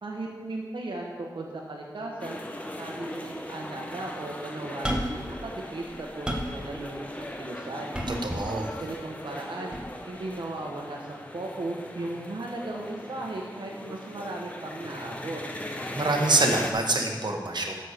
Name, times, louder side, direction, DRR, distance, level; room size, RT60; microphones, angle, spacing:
voice 1, 0.0-2.4 2.8-7.9 8.7-9.8 10.0-15.4, right 2 dB, 85° right, -1 dB, 1.1 m, -36 dB
sound 1, 2.2-16.7, left 1 dB, 15° left, 1.2 m, -39 dB
sound 2, 4.8-5.3 5.8-6.6 7.9-8.5 9.7-9.9, equal, 10° right, 1.2 m, -31 dB
voice 2, 8.2-8.7 15.9-17.7, right 2 dB, 65° right, 2 dB, 1.3 m, -25 dB
7.9 x 6.5 x 6.5 m, 1.5 s
wide cardioid pair, 45°, 8 cm